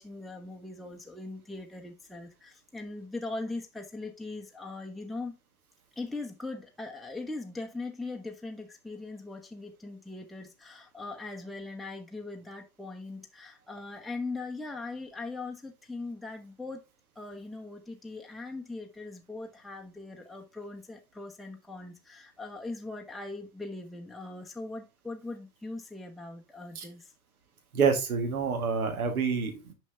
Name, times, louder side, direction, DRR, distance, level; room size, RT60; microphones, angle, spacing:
voice 1, 0.0-5.4 6.0-16.8 17.1-27.1, left 3 dB, ahead, 1.1 m, -40 dB
voice 2, 27.7-29.7, right 5 dB, 90° right, 1.8 m, -27 dB
6.1 x 5.7 x 3.4 m
hypercardioid pair, 90°, 42 cm